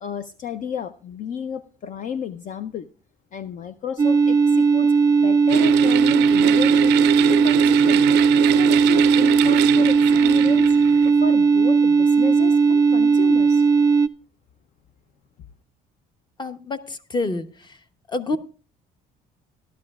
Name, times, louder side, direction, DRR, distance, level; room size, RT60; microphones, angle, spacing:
voice 1, 0.0-2.9 3.3-8.1 8.5-10.8 11.0-13.6, left 6 dB, 50° left, 11 dB, 0.5 m, -32 dB
sound 1, 4.0-14.1, right 5 dB, 20° right, 0.4 m, -17 dB
sound 2, 5.5-11.1, right 17 dB, 90° right, 0.4 m, -25 dB
voice 2, 16.4-17.8 18.1-18.4, left 2 dB, 25° left, 10 dB, 0.9 m, -28 dB
15.5 x 12.0 x 2.4 m, 0.37 s
cardioid pair, 110°, 17 cm